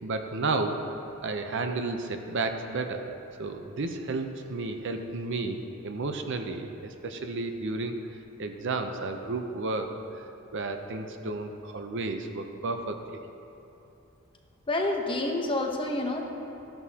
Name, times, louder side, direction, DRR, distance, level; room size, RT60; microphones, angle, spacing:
voice 1, 0.0-0.8 1.2-3.0 3.4-8.0 8.4-9.9 10.5-13.2, right 3 dB, 55° right, 6 dB, 0.7 m, -32 dB
voice 2, 14.7-16.2, left 2 dB, 25° left, 1 dB, 0.9 m, -28 dB
14.0 x 11.0 x 2.8 m, 2.8 s
head